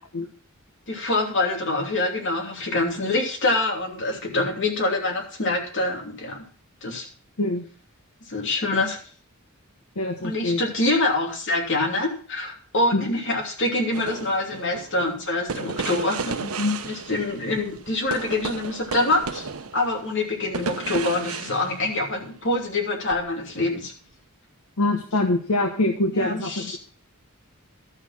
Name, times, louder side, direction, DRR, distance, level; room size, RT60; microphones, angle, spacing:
voice 1, 0.9-6.5 6.8-7.1 8.3-9.0 10.2-16.4 16.8-19.5 19.7-23.9 26.1-26.8, left 2 dB, 55° left, 1 dB, 2.9 m, -25 dB
voice 2, 10.0-10.6 12.9-13.1 16.4-16.8 24.8-26.8, left 2 dB, 80° left, 4 dB, 1.1 m, -24 dB
sound 1, 13.9-22.4 23.1-23.3, right 4 dB, 75° right, 1.0 m, -34 dB
12.5 x 6.4 x 5.9 m, 0.43 s
head